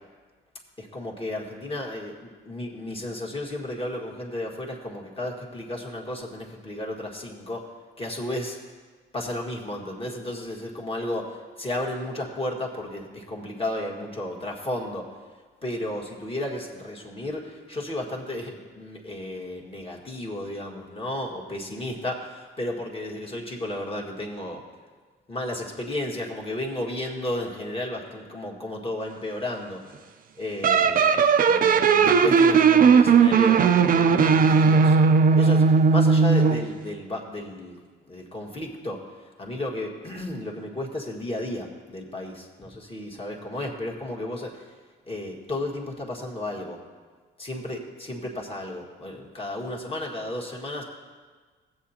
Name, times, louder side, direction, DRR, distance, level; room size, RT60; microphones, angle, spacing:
voice 1, 0.8-7.6 8.0-8.6 9.1-15.1 15.6-24.6 25.3-29.8 30.4-31.2 31.5-35.0 35.4-37.8 38.1-39.0 39.4-44.7 45.1-46.8 47.4-50.8, left 1 dB, 30° left, -1 dB, 1.7 m, -33 dB
sound 1, 30.6-36.7, right 5 dB, 45° right, 0.5 m, -17 dB
15.5 x 7.9 x 2.9 m, 1.4 s
cardioid pair, 90°, 20 cm